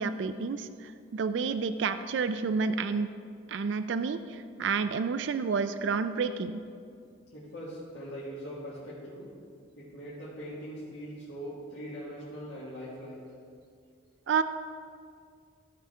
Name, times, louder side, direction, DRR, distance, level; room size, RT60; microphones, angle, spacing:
voice 1, 0.0-3.1 3.5-6.6 14.3-14.4, right 5 dB, 65° right, 11 dB, 0.3 m, -30 dB
voice 2, 7.3-9.3 9.8-13.2, equal, 75° left, -9 dB, 1.8 m, -41 dB
14.5 x 5.0 x 4.4 m, 2.3 s
head